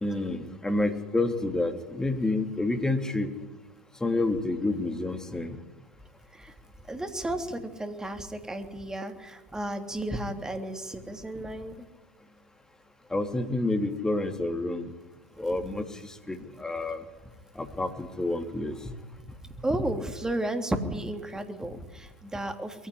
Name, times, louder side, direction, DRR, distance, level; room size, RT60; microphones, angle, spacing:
voice 1, 0.0-3.3 4.0-5.6 13.1-14.8 15.4-15.9 16.3-17.0 17.6-18.9, left 2 dB, 10° left, 5 dB, 3.1 m, -29 dB
voice 2, 6.9-11.7 19.6-22.9, right 1 dB, 10° right, 6 dB, 3.2 m, -33 dB
22.0 x 15.5 x 9.9 m, 1.0 s
hypercardioid pair, 85°, 6 cm